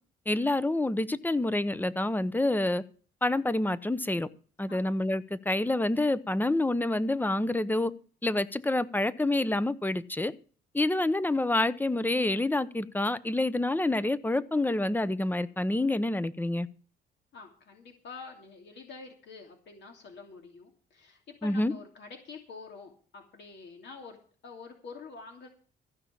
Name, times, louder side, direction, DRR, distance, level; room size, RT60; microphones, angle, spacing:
voice 1, 0.3-2.8 3.2-4.3 4.6-7.9 8.2-10.3 10.7-16.7 21.4-21.7, left 2 dB, 10° left, 0.9 m, -27 dB
voice 2, 17.3-24.2 24.4-25.5, left 4 dB, 65° left, 2.8 m, -47 dB
15.0 x 5.8 x 8.6 m
cardioid pair, 90°, 20 cm